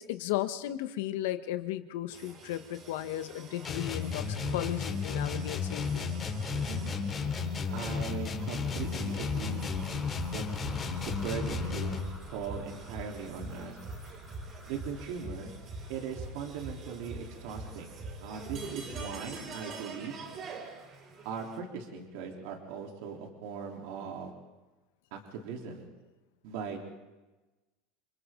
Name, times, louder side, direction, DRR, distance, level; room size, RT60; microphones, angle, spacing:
voice 1, 0.0-6.1, left 13 dB, 75° left, 10 dB, 1.3 m, -35 dB
sound 1, 2.1-21.6, right 3 dB, 40° right, 5.8 m, -44 dB
sound 2, 3.6-12.1, left 5 dB, 25° left, 2.9 m, -33 dB
sound 3, 7.0-15.1, left 2 dB, ahead, 3.5 m, -50 dB
voice 2, 7.7-9.7 10.3-10.4 11.1-12.0 12.3-13.8 14.7-15.5 15.9-17.9 18.2-20.1 21.2-24.3 25.1-25.8 26.4-26.8, right 6 dB, 70° right, 1 dB, 3.7 m, -39 dB
30.0 x 23.5 x 3.9 m, 1.1 s
supercardioid pair, 130°, 0 cm